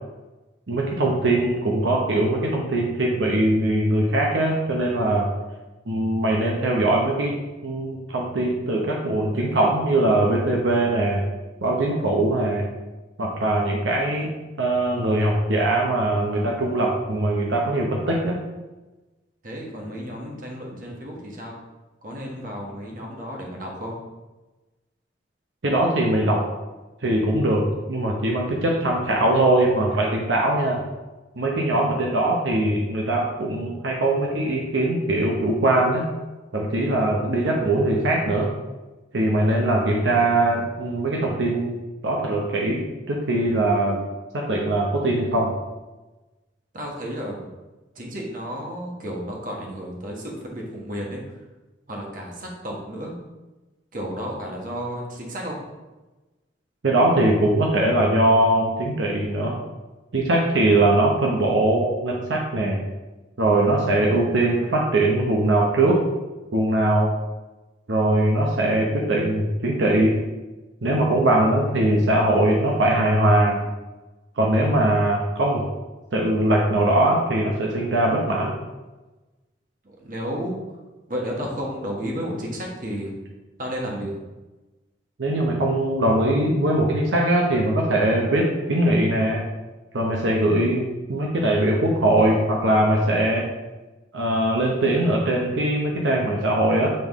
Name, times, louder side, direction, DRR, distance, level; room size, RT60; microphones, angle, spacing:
voice 1, 0.7-5.3 5.9-7.3 7.6-11.2 11.6-12.7 13.2-14.3 14.6-18.4 25.6-26.4 27.0-30.8 31.4-36.0 36.5-38.5 39.1-41.8 42.0-42.8 43.1-44.1 44.3-45.6 56.8-59.5 60.1-62.8 63.4-66.0 66.5-67.1 67.9-70.2 70.8-73.7 74.4-75.6 76.1-78.5 85.2-89.4 89.9-93.5 94.1-96.9, right 1 dB, 80° right, -1 dB, 0.8 m, -21 dB
voice 2, 19.4-21.5 22.0-23.9 46.7-47.5 47.9-51.2 51.9-53.1 53.9-55.6 79.8-80.5 81.1-83.1 83.6-84.2, equal, 45° right, -1 dB, 1.3 m, -32 dB
7.7 x 3.6 x 3.6 m, 1.1 s
head